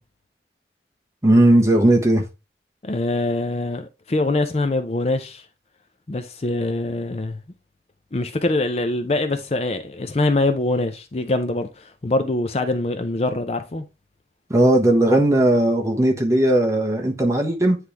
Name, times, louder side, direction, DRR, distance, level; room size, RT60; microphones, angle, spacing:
voice 1, 1.2-2.2 14.5-17.8, right 1 dB, 15° right, 1.2 m, -17 dB
voice 2, 2.8-5.4 6.1-7.4 8.1-13.8, left 2 dB, 35° left, 0.5 m, -24 dB
9.5 x 3.2 x 3.4 m
head